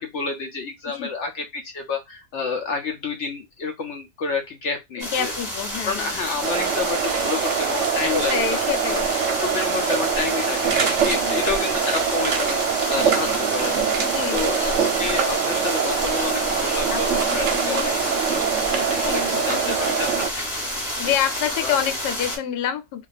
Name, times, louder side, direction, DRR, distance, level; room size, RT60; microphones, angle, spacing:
voice 1, 0.0-5.3 5.8-8.9 9.4-17.9 18.3-20.2 21.0-21.1 21.6-21.7, left 5 dB, 65° left, 0.7 m, -30 dB
voice 2, 5.0-6.1 8.1-9.2 11.1-11.4 14.0-14.5 16.9-18.0 19.1-20.0 21.0-23.1, left 9 dB, 90° left, 1.2 m, -28 dB
sound 1, 5.0-22.4, equal, 15° left, 1.2 m, -30 dB
sound 2, 6.4-20.3, right 7 dB, 60° right, 0.8 m, -24 dB
2.5 x 2.4 x 3.9 m
omnidirectional pair, 1.7 m